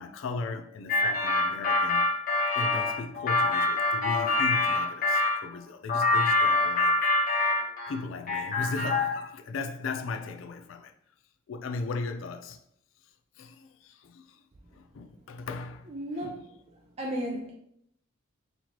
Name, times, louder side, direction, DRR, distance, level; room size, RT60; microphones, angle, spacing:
voice 1, 0.0-2.2 2.6-7.1 7.9-10.9 11.5-12.6 13.4-14.4 14.7-15.9 16.2-16.4, left 3 dB, 70° left, 0.4 m, -37 dB
sound 1, 0.9-5.4 5.9-8.0 8.3-9.2, left 2 dB, 45° left, 0.9 m, -25 dB
voice 2, 15.9-16.4 17.0-17.5, equal, 30° right, 0.4 m, -33 dB
4.1 x 3.0 x 2.9 m
head